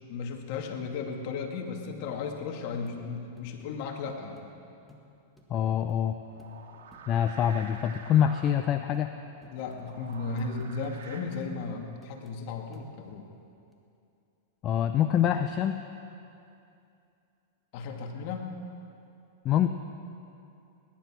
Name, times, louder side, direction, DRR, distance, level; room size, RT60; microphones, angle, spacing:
voice 1, 0.1-4.4 9.5-13.3 17.7-18.5, left 4 dB, 55° left, 3 dB, 2.2 m, -35 dB
sound 1, 1.9-2.0 2.4-2.5 2.9-3.0 3.4-4.5 4.9-5.1 5.4-5.5 5.9-6.0 6.4-6.5 6.9-7.1 7.4-7.5 7.9-8.0 8.4-8.6 8.9-9.1 9.4-11.0 11.3-11.5 12.0-12.4 12.7-13.2 13.7-13.8, equal, ahead, 1.9 m, -55 dB
voice 2, 5.5-6.2 7.1-9.1 14.6-15.8 19.4-19.7, left 9 dB, 35° left, 7 dB, 0.6 m, -25 dB
sound 2, 6.2-11.2, right 4 dB, 80° right, 2.1 m, -48 dB
19.5 x 11.0 x 6.2 m, 2.6 s
hypercardioid pair, 115°, 0 cm